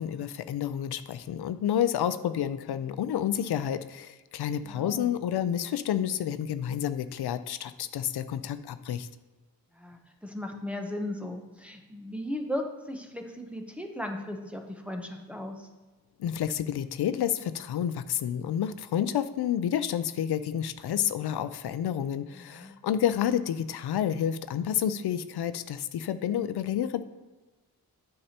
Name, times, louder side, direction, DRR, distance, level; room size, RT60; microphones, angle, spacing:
voice 1, 0.0-9.1 16.2-27.0, left 10 dB, 90° left, 12 dB, 0.5 m, -29 dB
voice 2, 4.6-5.1 9.7-15.7 22.4-22.7, left 1 dB, 5° right, 2 dB, 0.7 m, -37 dB
9.8 x 6.6 x 2.9 m, 1.2 s
wide cardioid pair, 145°, 38 cm